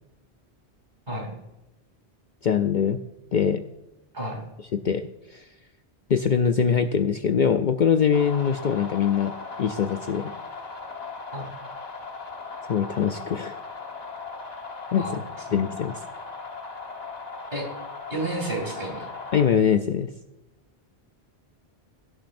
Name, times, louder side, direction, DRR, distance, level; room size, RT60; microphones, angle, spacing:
voice 1, 2.4-3.0 3.3-3.6 4.7-5.4 6.1-10.3 12.7-13.6 14.9-15.0 15.5-16.0 19.3-20.1, left 7 dB, 55° left, 8 dB, 0.6 m, -23 dB
sound 1, 8.1-19.4, left 4 dB, 40° left, 1.3 m, -38 dB
voice 2, 18.1-19.1, right 1 dB, 45° right, 0 dB, 3.4 m, -31 dB
16.5 x 7.3 x 2.6 m, 0.96 s
omnidirectional pair, 1.1 m